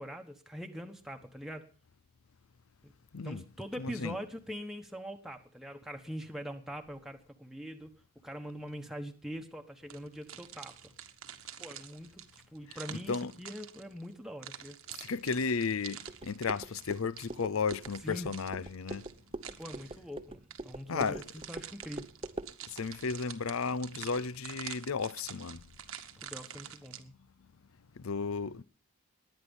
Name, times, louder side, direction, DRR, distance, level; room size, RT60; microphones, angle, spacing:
voice 1, 0.0-1.7 2.8-2.9 3.2-7.9 8.2-10.9 11.6-14.8 18.0-18.3 19.6-22.1 26.2-27.1, equal, ahead, 1.1 m, -43 dB
voice 2, 3.8-4.2 12.7-12.8 13.1-13.3 14.9-19.1 20.9-21.2 22.7-25.6 28.0-28.6, left 5 dB, 85° left, 0.6 m, -34 dB
sound 1, 9.9-14.1 14.4-20.0 20.5-27.0, right 10 dB, 85° right, 1.4 m, -47 dB
sound 2, 16.1-22.5, right 2 dB, 25° right, 0.7 m, -44 dB
19.5 x 10.0 x 5.4 m
head